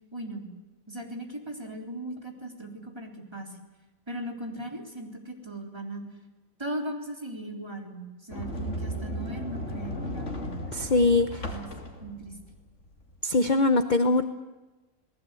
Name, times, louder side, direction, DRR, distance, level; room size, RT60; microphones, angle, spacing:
voice 1, 0.1-0.5 0.9-3.5 4.1-6.0 6.6-10.5 11.4-11.7 12.0-12.4, right 1 dB, 20° right, 1 dB, 3.8 m, -38 dB
Sliding door, 8.3-13.2, equal, 55° left, 3.2 m, -35 dB
voice 2, 10.7-11.5 13.2-14.3, left 2 dB, 35° left, 9 dB, 1.0 m, -22 dB
29.0 x 19.5 x 8.4 m, 1.2 s
omnidirectional pair, 1.5 m